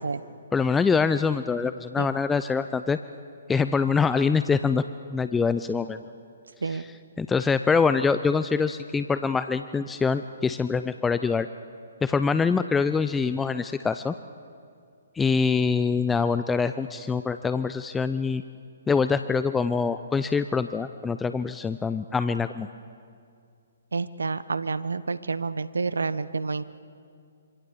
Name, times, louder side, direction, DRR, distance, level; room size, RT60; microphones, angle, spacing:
voice 1, 0.5-3.0 3.5-4.8 5.1-6.0 6.6-11.5 12.0-14.1 15.1-18.4 18.9-22.7, left 5 dB, 10° left, 11 dB, 0.5 m, -24 dB
voice 2, 23.9-26.6, right 4 dB, 80° right, 15 dB, 1.0 m, -29 dB
26.5 x 25.0 x 7.0 m, 2.3 s
figure-of-eight pair, 135°, 0 cm